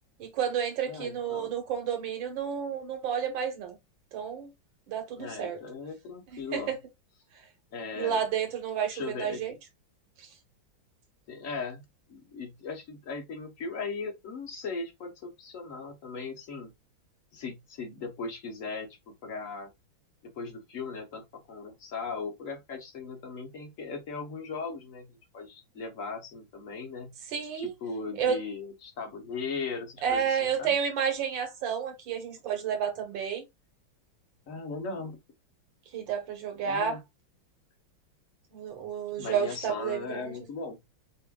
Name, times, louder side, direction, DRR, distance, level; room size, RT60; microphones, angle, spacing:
voice 1, 0.2-3.7 4.1-4.5 4.9-5.6 6.3-6.8 8.0-9.5 10.2-10.3 27.3-27.7 28.2-28.4 30.0-33.4 35.9-37.0 38.5-40.3, right 7 dB, 70° right, 1.8 m, -31 dB
voice 2, 0.9-1.5 5.1-6.7 7.7-8.2 8.9-9.4 11.3-16.7 17.3-19.7 20.2-27.1 27.5-30.7 34.5-35.2 36.6-37.0 39.2-40.8, left 4 dB, 50° left, 1.1 m, -38 dB
6.8 x 2.5 x 2.2 m
omnidirectional pair, 2.2 m